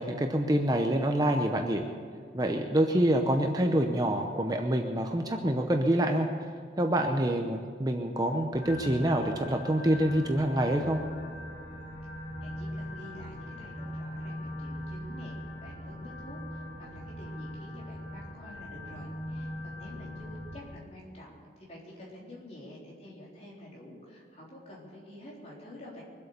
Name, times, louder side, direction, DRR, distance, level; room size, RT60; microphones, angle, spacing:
voice 1, 0.0-1.8 2.3-6.3 6.8-11.0, right 1 dB, 20° right, 4 dB, 0.7 m, -26 dB
sound 1, 8.5-20.6, left 1 dB, 80° left, 3.6 m, -40 dB
voice 2, 12.4-26.0, left 1 dB, 35° left, -4 dB, 3.9 m, -48 dB
23.0 x 8.4 x 6.8 m, 2.1 s
head